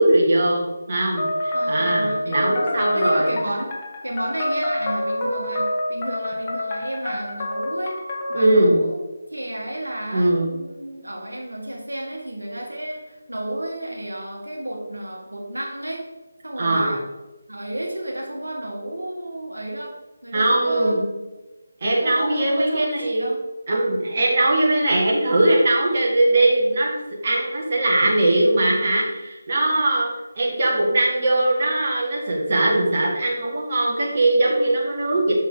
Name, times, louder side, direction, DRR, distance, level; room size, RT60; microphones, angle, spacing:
voice 1, 0.0-3.4 8.3-8.8 10.1-10.5 16.6-16.9 20.3-21.0 21.8-23.3 23.7-30.1 30.4-35.3, right 1 dB, 40° right, -3 dB, 1.4 m, -20 dB
sound 1, 1.2-8.6, left 1 dB, 25° left, 1.1 m, -26 dB
voice 2, 1.5-2.6 2.9-3.7 4.0-8.0 8.3-16.0 16.4-17.0 17.5-19.9 20.2-21.2 22.0-23.4, right 1 dB, 90° right, -1 dB, 1.3 m, -32 dB
6.2 x 4.0 x 3.8 m, 1.1 s
figure-of-eight pair, 160°, 0 cm